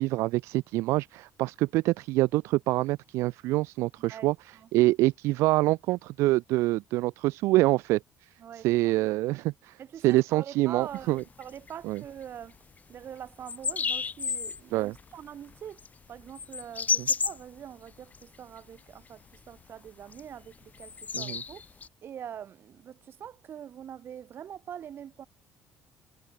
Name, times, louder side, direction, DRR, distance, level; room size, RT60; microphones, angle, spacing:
voice 1, 0.0-4.3 4.7-8.0 8.6-9.8 10.0-11.2 11.8-12.0 14.7-14.9 21.1-21.4, right 19 dB, 80° right, 0.6 m, -25 dB
voice 2, 4.1-4.7 8.4-9.0 9.8-12.6 12.9-15.8 16.1-25.3, right 9 dB, 55° right, 5.9 m, -44 dB
sound 1, 10.8-12.2 12.4-12.6 12.9-13.0 13.4-14.6 14.9-18.2 18.6-19.1 19.3-19.6 20.0-21.9, left 5 dB, 35° left, 1.7 m, -32 dB
supercardioid pair, 85°, 5 cm